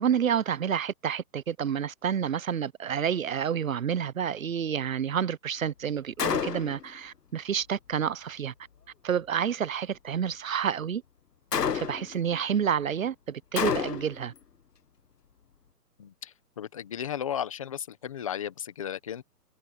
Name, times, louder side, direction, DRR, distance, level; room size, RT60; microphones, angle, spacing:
voice 1, 0.0-8.5 9.0-11.0 11.7-14.3, right 8 dB, 55° right, 1.1 m, -29 dB
Gunshot gunfire, 6.2-6.9 11.5-12.2 13.6-14.2, left 7 dB, 70° left, 1.9 m, -29 dB
voice 2, 16.0-19.2, left 9 dB, 20° left, 1.2 m, -35 dB
hypercardioid pair, 170°, 49 cm